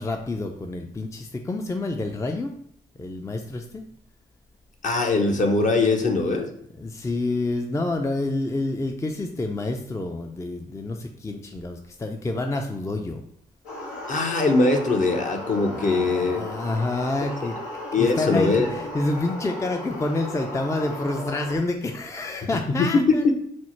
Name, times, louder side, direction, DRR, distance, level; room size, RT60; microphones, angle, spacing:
voice 1, 0.0-2.5 3.0-3.8 6.8-13.2 15.7-17.6 18.0-23.3, left 2 dB, 15° left, 4 dB, 0.4 m, -28 dB
voice 2, 4.8-6.5 14.1-16.5 17.9-18.7 22.8-23.3, left 3 dB, 45° left, 3 dB, 0.8 m, -21 dB
sound 1, 13.6-21.6, left 1 dB, 85° left, 1.0 m, -35 dB
4.3 x 2.0 x 4.3 m, 0.67 s
hypercardioid pair, 45°, 19 cm